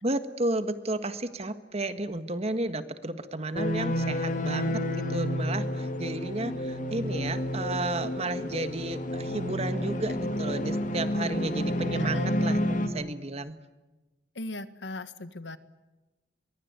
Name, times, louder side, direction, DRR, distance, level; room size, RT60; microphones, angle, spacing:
voice 1, 0.0-13.6, right 2 dB, 35° right, 11 dB, 1.5 m, -32 dB
sound 1, 3.6-12.9, equal, 45° left, 2.3 m, -30 dB
voice 2, 14.3-15.6, left 2 dB, 85° left, 13 dB, 1.5 m, -39 dB
23.0 x 22.5 x 9.5 m, 1.1 s
head